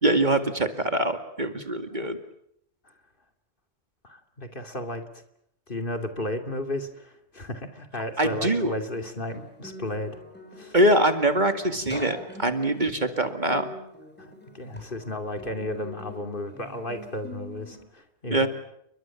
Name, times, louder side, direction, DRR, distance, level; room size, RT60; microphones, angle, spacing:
voice 1, 0.0-2.2 8.2-8.7 10.7-13.7 18.3-18.5, right 1 dB, 40° right, 8 dB, 2.4 m, -23 dB
voice 2, 1.8-2.1 4.0-5.0 5.7-10.2 10.5-10.7 14.2-18.5, left 1 dB, 45° left, 7 dB, 2.8 m, -34 dB
Guitar, 8.4-17.9, left 1 dB, 10° left, 7.2 m, -43 dB
30.0 x 23.0 x 7.3 m, 0.74 s
omnidirectional pair, 1.2 m